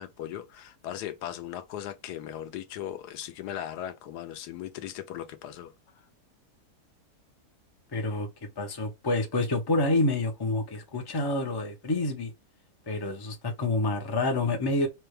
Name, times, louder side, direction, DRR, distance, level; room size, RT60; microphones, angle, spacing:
voice 1, 0.0-5.7, left 11 dB, 80° left, 1.2 m, -38 dB
voice 2, 7.9-8.3 8.6-12.3 12.9-14.9, left 2 dB, 30° left, 0.4 m, -28 dB
4.2 x 2.2 x 3.1 m
omnidirectional pair, 1.7 m